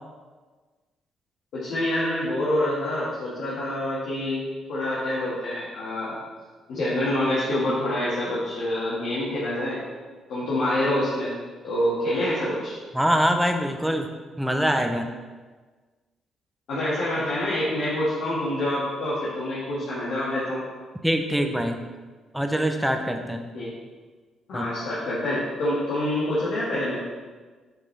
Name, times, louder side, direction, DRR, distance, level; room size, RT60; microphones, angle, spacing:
voice 1, 1.5-4.4 4.7-6.2 6.7-9.8 10.3-11.3 11.6-12.8 16.7-20.6 23.5-23.7 24.5-27.0, left 1 dB, 75° left, -9 dB, 1.9 m, -26 dB
voice 2, 12.9-14.1 14.4-15.1 21.0-21.8 22.3-23.4 24.5-24.7, equal, 5° right, 5 dB, 0.7 m, -24 dB
7.4 x 5.7 x 3.4 m, 1.4 s
cardioid pair, 90°, 0 cm